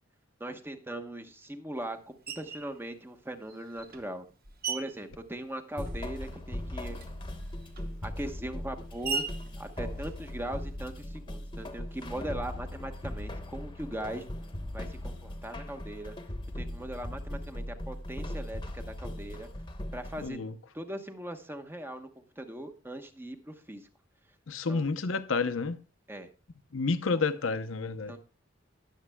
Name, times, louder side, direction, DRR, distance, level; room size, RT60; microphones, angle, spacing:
voice 1, 0.4-4.3 4.7-7.0 8.0-9.3 9.5-14.2 14.7-16.2 16.5-19.5 19.9-20.4 20.7-22.1 22.4-23.9 24.7-24.8 26.1-26.3 27.1-27.2 28.1-28.2, right 1 dB, 10° right, 1.0 m, -40 dB
Screech, 2.3-2.7 3.5-6.2 6.5-10.8, right 5 dB, 50° right, 1.1 m, -40 dB
sound 1, 5.8-20.3, left 1 dB, 25° left, 1.0 m, -39 dB
voice 2, 20.2-20.5 24.5-25.8 26.7-28.2, left 4 dB, 75° left, 0.7 m, -30 dB
20.5 x 7.3 x 2.2 m
head